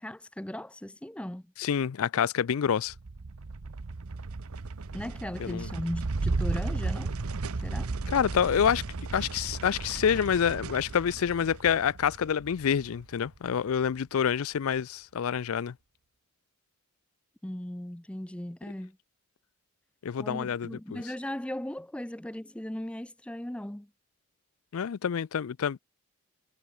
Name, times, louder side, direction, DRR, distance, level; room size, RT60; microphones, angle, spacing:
voice 1, 0.0-1.4 4.9-7.1 7.6-7.9 17.4-19.0 20.2-23.9, left 1 dB, 5° left, 0.4 m, -37 dB
voice 2, 1.6-2.9 5.4-5.7 8.1-8.8 9.1-15.7 20.0-21.0 24.7-25.8, left 8 dB, 70° left, 0.4 m, -27 dB
sound 1, 2.9-13.5, right 3 dB, 75° right, 0.8 m, -35 dB
head